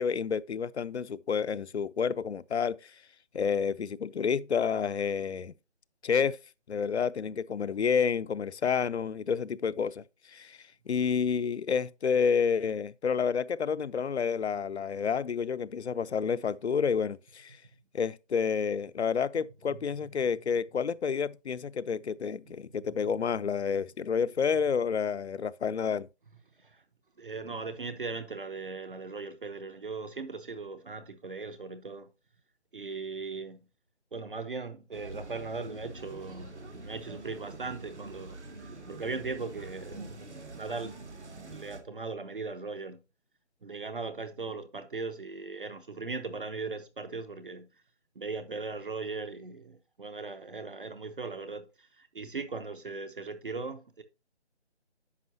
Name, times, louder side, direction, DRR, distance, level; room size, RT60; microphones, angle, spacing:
voice 1, 0.0-2.9 3.3-5.5 6.0-6.4 6.7-10.6 10.9-17.6 17.9-26.1, left 6 dB, 70° left, 0.6 m, -29 dB
voice 2, 27.2-32.1 32.7-33.6 34.1-36.6 36.8-43.0 43.6-47.8 48.1-54.0, right 4 dB, 50° right, 0.8 m, -39 dB
sound 1, 34.9-41.8, right 2 dB, 80° right, 2.1 m, -45 dB
9.8 x 6.1 x 2.8 m
figure-of-eight pair, 165°, 34 cm